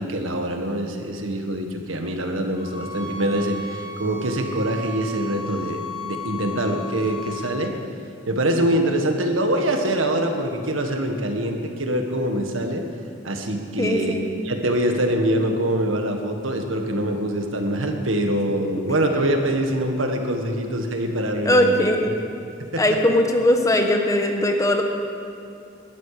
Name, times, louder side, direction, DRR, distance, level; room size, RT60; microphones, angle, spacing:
voice 1, 0.0-7.7 8.3-12.8 13.2-21.8 22.0-22.1 22.7-22.8, right 1 dB, 85° right, 4 dB, 1.7 m, -24 dB
sound 1, 2.5-7.5, left 2 dB, 70° left, 4.6 m, -35 dB
voice 2, 13.8-14.3 21.4-22.2 22.8-24.8, left 1 dB, 15° left, 3 dB, 1.2 m, -19 dB
20.5 x 13.5 x 5.0 m, 2.5 s
head